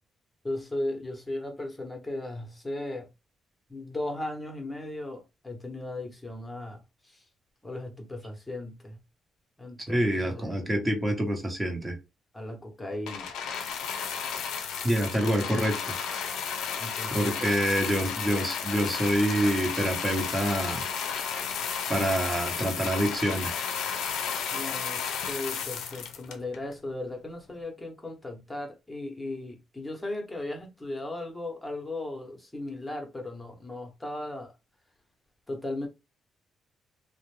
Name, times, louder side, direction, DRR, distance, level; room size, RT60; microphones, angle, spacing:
voice 1, 0.4-3.1 3.7-6.8 7.0-7.2 7.6-9.0 9.6-10.6 12.3-13.3 16.8-17.5 24.5-34.5 35.5-35.9, left 1 dB, 10° left, 0.9 m, -36 dB
voice 2, 9.9-12.0 14.8-16.0 17.1-20.9 21.9-23.5, right 1 dB, 20° right, 0.9 m, -27 dB
sound 1, 13.1-26.7 27.5-27.6, left 7 dB, 80° left, 0.5 m, -33 dB
2.4 x 2.1 x 3.1 m
cardioid pair, 90°, 0 cm